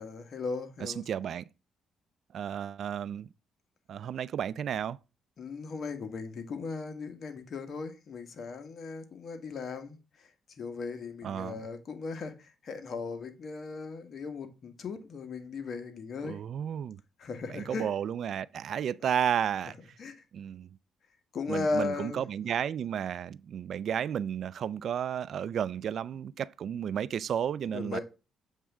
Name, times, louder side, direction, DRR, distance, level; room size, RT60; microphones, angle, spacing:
voice 1, 0.0-1.0 5.4-10.3 10.6-16.4 17.2-17.9 19.0-19.1 20.0-20.1 21.3-22.2 27.7-28.0, left 4 dB, 55° left, 1.4 m, -37 dB
voice 2, 0.8-1.4 2.3-3.3 3.9-5.0 11.2-11.6 16.2-17.0 17.5-19.7 20.3-20.7 21.5-28.0, right 9 dB, 65° right, 0.4 m, -32 dB
7.3 x 3.4 x 6.1 m
cardioid pair, 90°, 0 cm